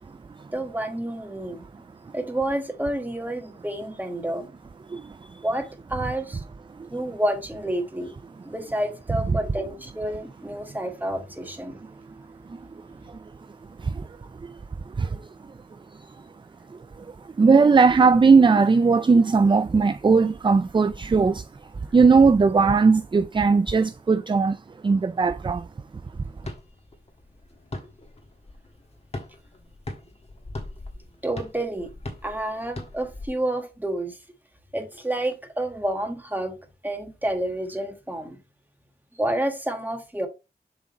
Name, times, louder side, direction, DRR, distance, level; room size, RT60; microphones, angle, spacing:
voice 1, 0.5-1.6 2.1-4.5 5.4-6.4 6.9-8.1 8.4-11.8 31.2-31.9 32.2-34.2 34.7-36.5 36.8-38.4 39.1-40.3, right 1 dB, 10° right, 1.5 m, -29 dB
voice 2, 4.9-5.4 6.8-6.9 12.5-12.6 13.1-13.2 13.8-14.1 14.4-14.6 15.0-15.2 17.0-17.1 17.4-21.5 21.9-25.7, right 4 dB, 30° right, 0.3 m, -19 dB
sound 1, 26.4-33.3, left 2 dB, 40° left, 1.4 m, -40 dB
7.2 x 3.7 x 4.2 m
wide cardioid pair, 95°, 17 cm